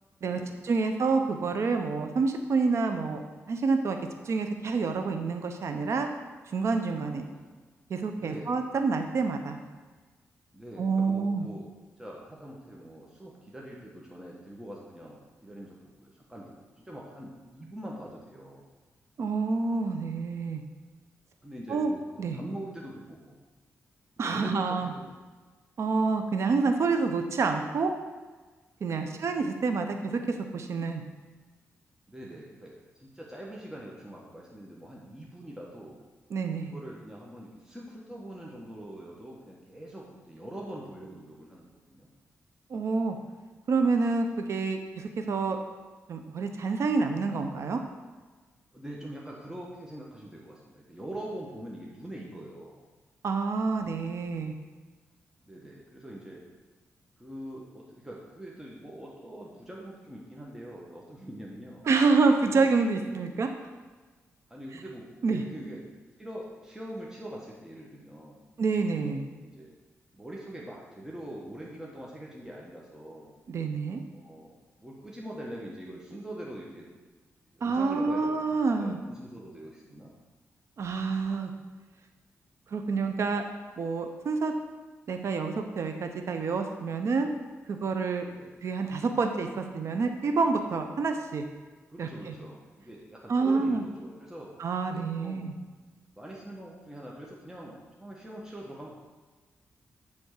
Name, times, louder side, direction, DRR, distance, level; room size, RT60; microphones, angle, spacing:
voice 1, 0.2-4.0 4.2-6.1 6.5-7.3 7.9-9.6 10.8-11.5 19.2-20.6 21.7-21.9 22.2-22.4 24.2-24.9 25.8-27.9 28.8-31.0 36.3-36.7 42.7-43.2 43.7-45.6 46.1-47.8 53.2-54.5 61.8-63.5 65.2-65.4 68.6-69.3 73.5-74.0 77.6-79.0 80.8-81.5 82.7-83.4 83.8-84.5 85.1-87.3 87.7-88.2 88.6-91.4 92.0-92.3 93.3-93.8 94.6-95.5, right 4 dB, 65° right, 5 dB, 0.7 m, -28 dB
voice 2, 7.3-7.7 8.2-8.5 10.5-11.6 12.0-18.6 21.4-22.0 22.3-23.4 24.2-25.1 28.9-29.2 32.1-36.0 36.6-42.1 48.7-52.8 55.4-56.4 57.2-61.8 62.4-62.6 64.5-65.9 66.2-68.4 69.4-69.7 70.1-73.3 74.1-74.5 74.8-76.9 77.5-80.1 88.2-88.6 91.9-94.5 94.9-95.5 96.1-98.9, right 1 dB, 10° right, -4 dB, 1.3 m, -43 dB
8.1 x 3.5 x 6.5 m, 1.3 s
cardioid pair, 85°, 5 cm